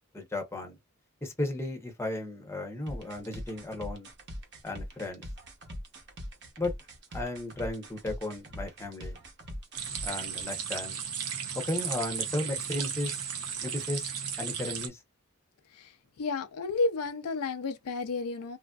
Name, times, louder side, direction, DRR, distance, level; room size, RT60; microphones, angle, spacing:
voice 1, 0.1-0.8 1.2-4.1 4.6-5.2 6.6-6.7 7.1-9.2 10.0-11.0 11.5-13.3 13.6-14.1 14.4-15.0, left 2 dB, 10° left, 0.7 m, -35 dB
sound 1, 2.9-10.4, equal, 50° right, 0.9 m, -42 dB
sound 2, 9.8-14.9, right 7 dB, 85° right, 0.7 m, -35 dB
voice 2, 16.2-18.6, left 3 dB, 80° left, 0.5 m, -31 dB
3.0 x 2.5 x 2.3 m
head